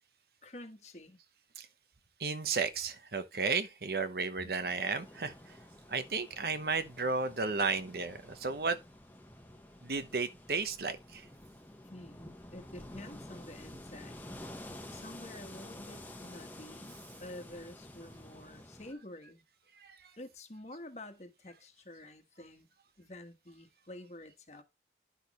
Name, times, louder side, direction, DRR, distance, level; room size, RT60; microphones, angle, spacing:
voice 1, 0.4-1.2 4.4-4.7 11.8-14.2 14.9-19.4 20.2-22.7 23.0-24.6, left 1 dB, 40° left, 1.4 m, -49 dB
voice 2, 2.2-5.6 5.9-8.8 9.8-11.3 19.7-20.1, right 4 dB, 60° right, 1.0 m, -34 dB
sound 1, 4.7-18.9, left 1 dB, 10° left, 1.1 m, -50 dB
10.5 x 6.3 x 3.0 m
head